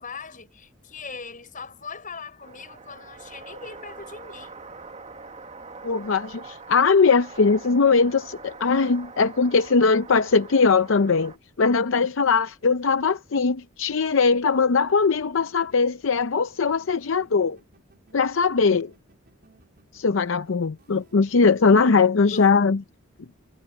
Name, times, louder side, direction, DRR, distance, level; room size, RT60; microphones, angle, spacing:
voice 1, 0.0-4.6 22.3-22.6, left 5 dB, 40° left, 6.8 m, -40 dB
sound 1, 2.4-11.4, right 4 dB, 35° right, 1.9 m, -43 dB
voice 2, 5.8-17.6 18.1-18.9 19.9-22.8, left 4 dB, 70° left, 0.6 m, -20 dB
sound 2, 15.0-22.1, right 2 dB, 50° right, 4.0 m, -58 dB
head